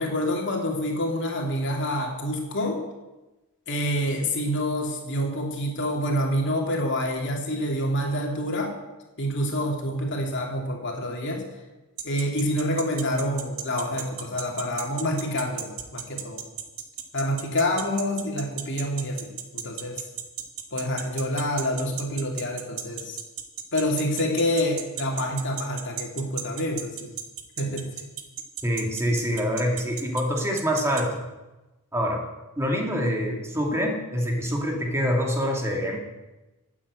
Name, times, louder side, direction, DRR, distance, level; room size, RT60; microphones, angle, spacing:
voice 1, 0.0-2.8 3.7-8.7 9.2-11.4 12.0-16.4 17.1-19.3 19.5-20.0 20.7-23.2 23.7-27.1 27.6-27.9, equal, 55° left, 1 dB, 3.0 m, -27 dB
sound 1, 12.0-31.0, right 11 dB, 80° right, 1.8 m, -33 dB
voice 2, 28.6-31.2 31.9-32.2 32.6-36.0, equal, 10° right, 0 dB, 2.4 m, -25 dB
13.5 x 8.8 x 8.6 m, 1.1 s
head